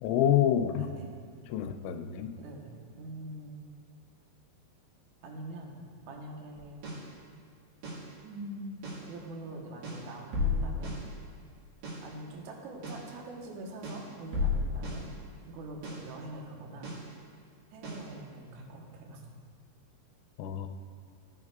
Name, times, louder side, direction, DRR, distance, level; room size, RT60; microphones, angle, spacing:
voice 1, 0.0-0.9 1.5-2.3 20.4-20.7, left 10 dB, 85° left, 6 dB, 2.9 m, -27 dB
voice 2, 0.7-1.1 2.4-3.7 5.2-6.9 8.2-8.8 9.1-10.9 12.0-15.1 15.5-16.9 17.7-19.2, right 1 dB, 80° right, -1 dB, 1.7 m, -44 dB
sound 1, 6.6-7.2 7.8-8.2 8.8-9.2 9.8-11.2 11.8-12.2 12.8-13.2 13.8-15.2 15.8-16.2 16.8-17.2 17.8-18.2, left 3 dB, 60° right, 2.9 m, -34 dB
18.0 x 6.5 x 2.4 m, 2.3 s
omnidirectional pair, 5.2 m